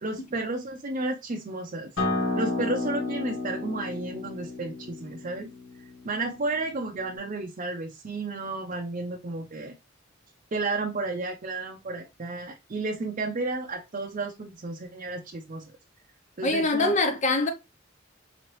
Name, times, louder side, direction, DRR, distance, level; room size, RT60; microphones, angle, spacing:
voice 1, 0.0-1.9 2.3-5.5 6.0-9.7 10.5-15.6 16.4-16.9, right 3 dB, 40° right, 0.6 m, -32 dB
Acoustic guitar, 2.0-7.2, left 2 dB, 85° left, 1.7 m, -32 dB
voice 2, 16.4-17.5, left 2 dB, 40° left, 0.5 m, -23 dB
4.8 x 3.1 x 3.0 m
head